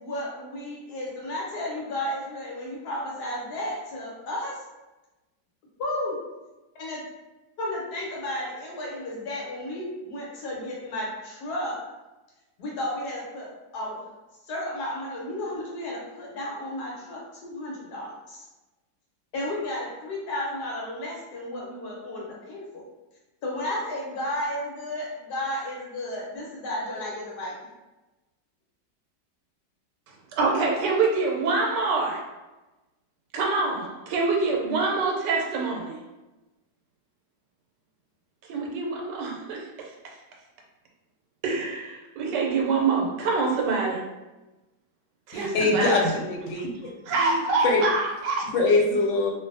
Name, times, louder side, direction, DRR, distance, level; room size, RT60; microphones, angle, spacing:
voice 1, 0.0-4.6 5.8-6.2 6.7-7.0 7.6-11.8 12.6-13.5 13.7-14.0 14.5-18.5 19.3-22.8 23.4-27.5, left 1 dB, 70° left, -4 dB, 1.2 m, -33 dB
voice 2, 30.3-32.3 33.3-36.0 38.5-40.1 41.4-44.1 45.3-46.0 46.5-46.7 47.1-48.5, right 3 dB, 80° right, -1 dB, 1.2 m, -26 dB
voice 3, 45.3-46.7 47.2-47.8 48.5-49.3, left 3 dB, 90° left, 0 dB, 1.3 m, -23 dB
2.6 x 2.5 x 2.5 m, 1.1 s
omnidirectional pair, 1.9 m